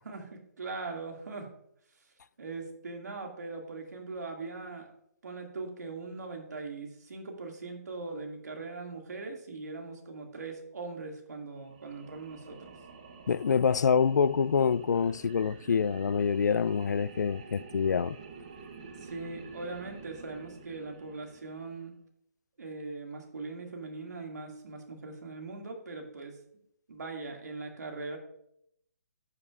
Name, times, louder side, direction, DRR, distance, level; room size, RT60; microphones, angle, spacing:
voice 1, 0.0-1.5 2.4-4.9 5.2-12.8 18.8-22.0 22.6-26.4 26.9-28.2, right 3 dB, 75° right, 2.2 m, -40 dB
sound 1, 11.6-21.9, right 5 dB, 25° right, 0.8 m, -49 dB
voice 2, 13.3-18.2, left 6 dB, 90° left, 0.4 m, -26 dB
11.0 x 8.6 x 2.5 m
hypercardioid pair, 175°, 9 cm